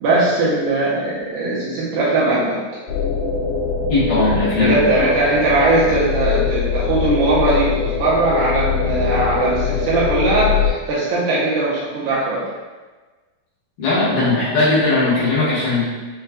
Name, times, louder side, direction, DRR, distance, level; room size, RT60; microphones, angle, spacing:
voice 1, 0.0-2.6 4.6-12.4, right 2 dB, 80° right, -8 dB, 2.4 m, -19 dB
sound 1, 2.9-10.7, left 6 dB, 85° left, 2.4 m, -22 dB
voice 2, 3.9-4.8 13.8-15.8, left 2 dB, 65° left, -11 dB, 2.4 m, -18 dB
6.6 x 2.3 x 2.2 m, 1.3 s
omnidirectional pair, 4.6 m